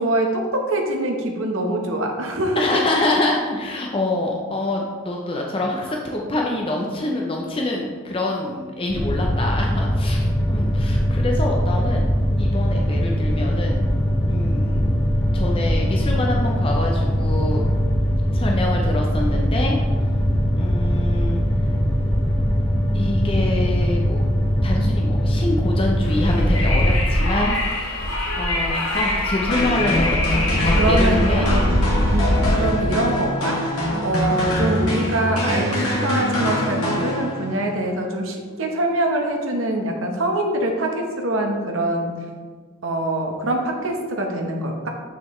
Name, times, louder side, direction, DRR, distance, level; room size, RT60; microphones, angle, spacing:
voice 1, 0.0-2.8 30.7-31.8 32.1-42.1 42.8-44.9, right 1 dB, 65° right, 2 dB, 0.9 m, -24 dB
voice 2, 2.6-12.1 12.4-13.8 14.2-17.6 18.3-19.8 20.5-21.4 22.9-24.3 24.6-31.5 32.3-32.5, left 2 dB, 25° left, 0 dB, 0.5 m, -26 dB
sound 1, 8.9-26.9, equal, 10° left, 1.0 m, -21 dB
Wind, 26.0-32.7, left 1 dB, 65° left, 1.4 m, -22 dB
sound 2, 29.5-37.6, left 1 dB, 85° left, 1.9 m, -24 dB
6.7 x 6.1 x 3.1 m, 1.5 s
head